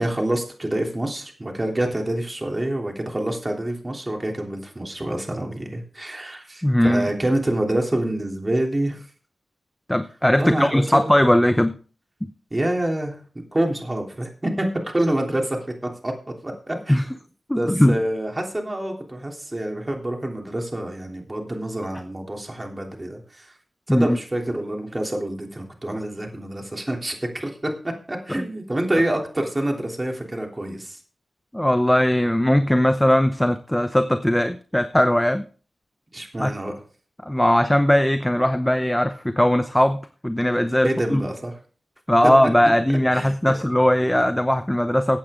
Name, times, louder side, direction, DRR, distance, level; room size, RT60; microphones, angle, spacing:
voice 1, 0.0-9.0 10.4-10.8 12.5-13.2 13.5-16.1 16.4-17.0 17.5-23.5 23.9-27.7 28.1-31.0 36.1-36.7 40.8-41.5 42.2-42.3 43.1-43.3, right 1 dB, 20° right, 1 dB, 3.2 m, -27 dB
voice 2, 6.6-7.1 9.9-11.8 12.2-12.3 16.9-17.1 17.5-18.0 23.9-24.2 28.3-28.4 31.5-35.4 36.4-36.5 37.2-41.2 42.1-45.2, left 1 dB, 10° left, 9 dB, 0.8 m, -19 dB
15.0 x 8.5 x 3.7 m, 0.39 s
wide cardioid pair, 80°, 0 cm